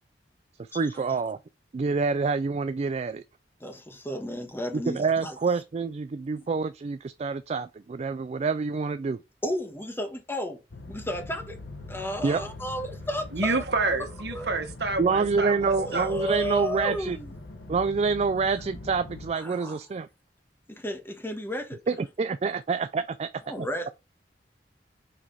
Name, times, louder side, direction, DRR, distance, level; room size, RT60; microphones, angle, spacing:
voice 1, 0.6-1.4 1.7-3.2 4.7-9.2 12.2-12.4 15.0-17.2 17.7-20.1 21.9-23.3 23.6-23.7, right 4 dB, 35° right, 0.3 m, -27 dB
voice 2, 3.6-5.4 9.4-10.6 10.9-11.6 11.9-13.7 14.0-14.5 15.8-17.3 19.4-19.8 20.7-21.8 23.5-23.9, equal, 15° left, 1.4 m, -33 dB
sound 1, 10.7-19.3, left 2 dB, 85° left, 1.2 m, -42 dB
voice 3, 13.3-16.1, right 3 dB, 65° right, 1.4 m, -28 dB
5.8 x 4.7 x 4.0 m
head